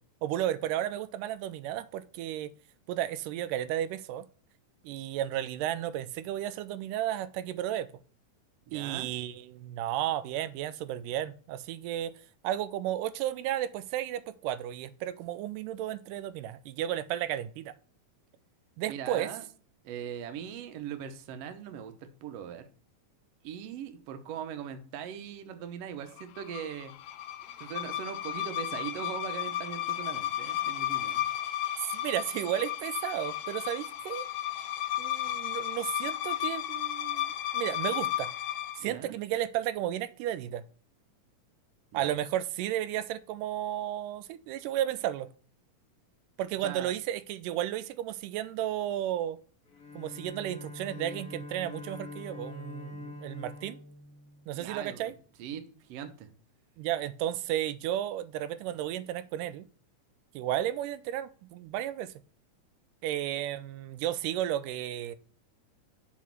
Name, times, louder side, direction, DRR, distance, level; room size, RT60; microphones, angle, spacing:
voice 1, 0.2-2.5 2.9-4.2 4.8-7.9 8.7-12.1 12.4-17.7 18.8-19.3 31.9-34.3 35.0-38.3 38.8-40.6 41.9-45.3 46.4-49.4 50.0-53.8 54.5-55.1 56.8-59.6 60.4-62.1 63.0-65.2, right 12 dB, 85° right, 2.1 m, -33 dB
voice 2, 8.7-9.1 18.9-19.4 19.8-22.7 23.4-26.9 27.5-31.2 38.8-39.2 41.9-42.1 46.6-46.9 54.5-56.3, right 8 dB, 70° right, 1.6 m, -40 dB
sound 1, 26.2-38.9, left 12 dB, 90° left, 1.5 m, -34 dB
Bowed string instrument, 49.7-54.9, left 2 dB, 35° left, 1.7 m, -44 dB
6.4 x 4.0 x 5.9 m
omnidirectional pair, 3.7 m